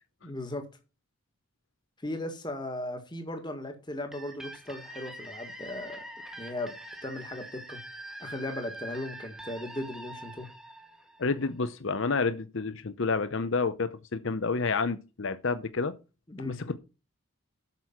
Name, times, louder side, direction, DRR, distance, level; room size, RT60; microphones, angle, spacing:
voice 1, 0.2-0.7 2.0-6.0 6.4-6.8 7.0-7.8 8.2-10.5 16.3-16.6, left 1 dB, 20° left, 1.6 m, -37 dB
sound 1, 4.1-11.7, right 1 dB, ahead, 1.5 m, -44 dB
voice 2, 11.2-15.9 16.4-16.8, left 4 dB, 60° left, 0.7 m, -29 dB
8.3 x 6.4 x 5.8 m
head